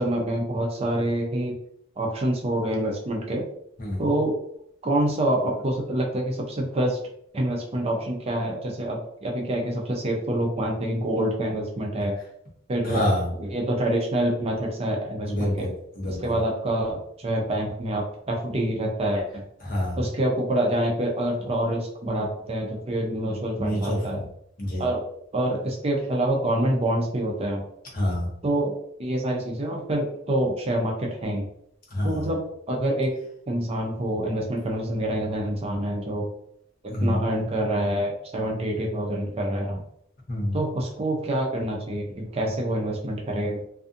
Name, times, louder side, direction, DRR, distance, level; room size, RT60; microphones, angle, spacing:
voice 1, 0.0-1.6 2.0-3.5 4.0-4.4 4.8-7.0 7.3-12.2 12.7-13.0 13.4-15.7 16.2-19.4 20.0-24.2 24.8-25.0 25.3-27.6 28.4-31.4 32.0-33.1 33.5-36.3 36.8-39.8 40.5-43.6, right 1 dB, 30° right, 0 dB, 0.5 m, -26 dB
voice 2, 3.8-4.1 12.8-13.3 15.3-16.4 19.6-20.0 23.6-24.2 24.6-24.9 27.9-28.3 31.9-32.3 36.9-37.2 40.3-40.6, left 1 dB, 45° left, -3 dB, 0.8 m, -27 dB
2.5 x 2.4 x 2.5 m, 0.70 s
head